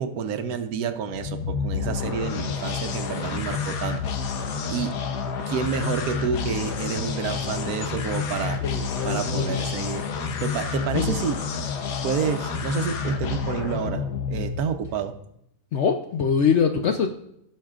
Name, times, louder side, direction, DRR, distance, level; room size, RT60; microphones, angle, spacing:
voice 1, 0.0-4.0 4.7-4.9 5.5-8.6 9.0-10.1 10.4-11.4 12.0-15.2, right 7 dB, 70° right, 8 dB, 1.1 m, -29 dB
sound 1, 1.1-14.9, left 6 dB, 90° left, 1.4 m, -29 dB
voice 2, 8.6-9.6 10.9-11.2 15.7-17.1, left 6 dB, 65° left, 5 dB, 0.7 m, -23 dB
16.5 x 6.4 x 2.4 m, 0.77 s
omnidirectional pair, 1.7 m